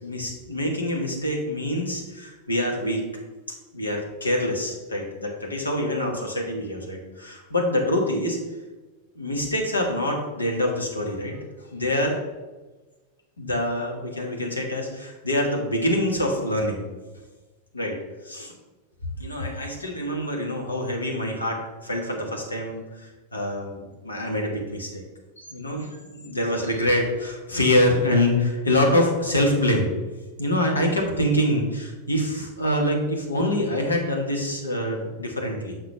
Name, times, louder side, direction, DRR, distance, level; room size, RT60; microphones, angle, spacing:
voice 1, 0.0-3.0 3.7-8.4 9.1-11.4 11.7-12.2 13.4-16.8 17.7-18.5 19.2-25.0 25.4-30.0 30.4-35.8, left 1 dB, 80° left, 1 dB, 1.3 m, -25 dB
6.6 x 6.1 x 3.3 m, 1.2 s
figure-of-eight pair, 90°, 0 cm